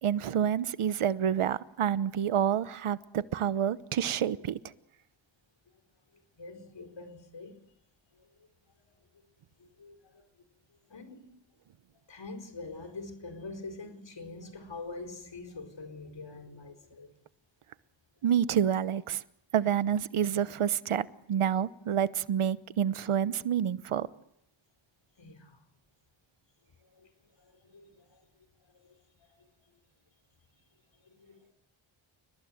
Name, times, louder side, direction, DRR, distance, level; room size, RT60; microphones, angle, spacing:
voice 1, 0.0-4.6 18.2-19.2 19.5-24.1, right 9 dB, 85° right, 1.0 m, -28 dB
voice 2, 6.1-7.6 8.1-8.5 9.6-10.2 10.9-11.4 12.1-17.1 25.2-25.6 26.8-27.1 27.4-28.2 28.7-29.0 29.4-29.5 31.0-31.5, left 3 dB, 60° left, 4.9 m, -45 dB
30.0 x 19.5 x 7.8 m
cardioid pair, 55°, 49 cm